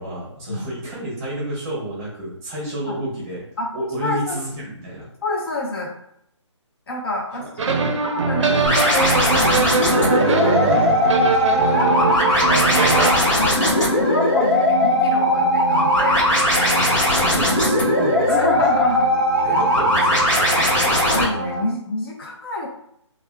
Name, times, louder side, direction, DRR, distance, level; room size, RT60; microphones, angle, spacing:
voice 1, 0.0-3.4 3.7-5.1 7.4-7.5 7.7-8.0 10.6-10.9 16.8-18.7 19.4-20.6, right 1 dB, 15° right, -5 dB, 0.8 m, -31 dB
voice 2, 4.0-4.4 5.2-5.9 6.9-7.5 8.0-10.6 11.5-16.3 18.3-19.1 19.4-19.6 20.8-22.7, left 2 dB, 50° left, -1 dB, 0.8 m, -28 dB
sound 1, 7.6-13.1, right 4 dB, 70° right, 0.5 m, -21 dB
sound 2, 8.7-21.2, left 1 dB, 80° left, 1.3 m, -19 dB
sound 3, 9.2-21.6, right 1 dB, 25° left, 1.2 m, -29 dB
3.3 x 2.3 x 2.2 m, 0.74 s
hypercardioid pair, 160°, 16 cm